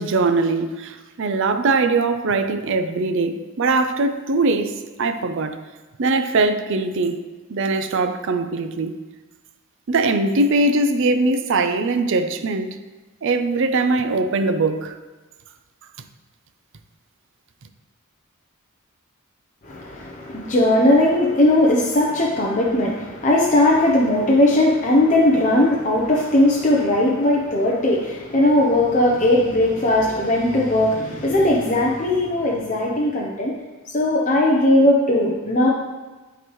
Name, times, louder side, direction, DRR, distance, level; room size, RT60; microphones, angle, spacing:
voice 1, 0.0-5.6 6.0-7.2 7.5-9.0 9.9-12.8 13.2-15.0, right 3 dB, 65° right, 0.5 m, -21 dB
voice 2, 19.6-33.5 33.9-35.7, left 1 dB, 35° left, 0.7 m, -18 dB
11.5 x 4.0 x 3.1 m
head